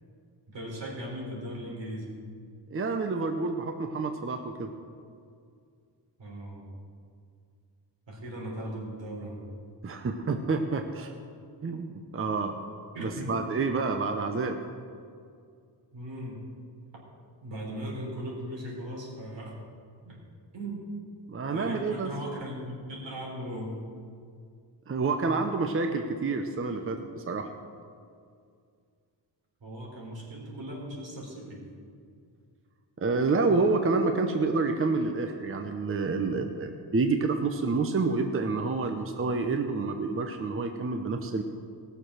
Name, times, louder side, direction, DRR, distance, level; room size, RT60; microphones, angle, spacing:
voice 1, 0.5-2.1 6.2-6.6 8.1-9.4 12.9-13.3 15.9-16.4 17.4-19.6 20.0-20.2 20.5-20.9 21.5-23.8 29.6-31.6, right 1 dB, 80° right, -3 dB, 4.0 m, -38 dB
voice 2, 2.7-4.7 9.8-11.1 11.6-12.6 13.0-14.6 21.3-22.1 24.9-27.5 33.0-41.4, right 3 dB, 30° right, 6 dB, 0.7 m, -28 dB
18.0 x 6.8 x 6.3 m, 2.3 s
wide cardioid pair, 150°, 44 cm